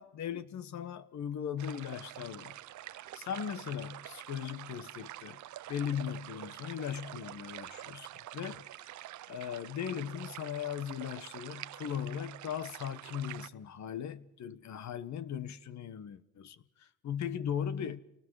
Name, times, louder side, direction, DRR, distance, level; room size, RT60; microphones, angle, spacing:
voice 1, 0.0-2.6 3.1-5.4 5.7-8.1 8.3-8.6 9.3-18.0, left 8 dB, 65° left, 1.4 m, -38 dB
sound 1, 1.6-13.5, right 14 dB, 70° right, 0.8 m, -47 dB
28.0 x 19.5 x 4.8 m
cardioid pair, 90°, 30 cm